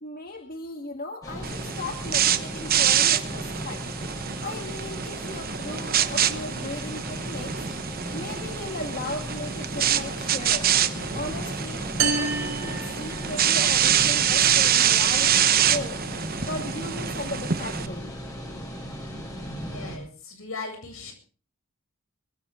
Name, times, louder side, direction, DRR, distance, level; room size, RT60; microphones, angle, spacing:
voice 1, 0.0-3.8 4.4-7.7 8.1-11.9 12.1-16.0 16.4-18.2, left 2 dB, 45° left, 4 dB, 1.9 m, -36 dB
sound 1, 1.2-20.0, equal, 15° left, 6.1 m, -36 dB
sound 2, 1.4-17.9, right 9 dB, 45° right, 1.1 m, -25 dB
sound 3, 12.0-13.7, right 5 dB, 75° right, 3.8 m, -28 dB
voice 2, 19.4-21.1, left 4 dB, 75° left, 5 dB, 7.8 m, -39 dB
23.0 x 16.0 x 3.8 m, 0.39 s
head